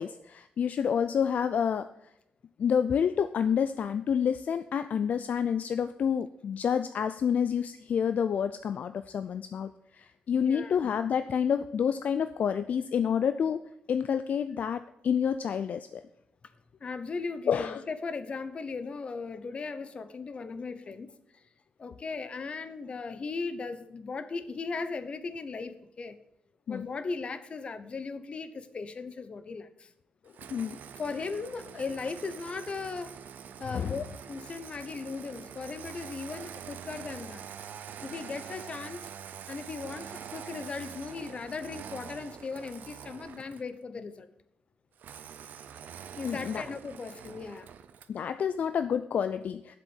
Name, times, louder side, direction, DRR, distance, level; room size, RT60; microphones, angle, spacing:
voice 1, 0.0-1.9 2.6-13.6 13.9-16.0 17.5-17.8 26.7-26.9 30.5-30.8 33.7-33.9 46.2-46.6 48.1-49.8, left 7 dB, 60° left, 11 dB, 0.4 m, -28 dB
voice 2, 10.4-10.8 16.8-21.4 21.8-26.2 26.7-29.9 31.0-33.2 33.6-37.5 38.0-39.1 39.5-44.3 46.2-47.7, left 4 dB, 40° left, 12 dB, 0.9 m, -37 dB
Engine starting, 30.3-43.7 45.0-48.2, right 8 dB, 80° right, 0.7 m, -45 dB
7.7 x 7.4 x 7.9 m, 0.80 s
wide cardioid pair, 135°, 3 cm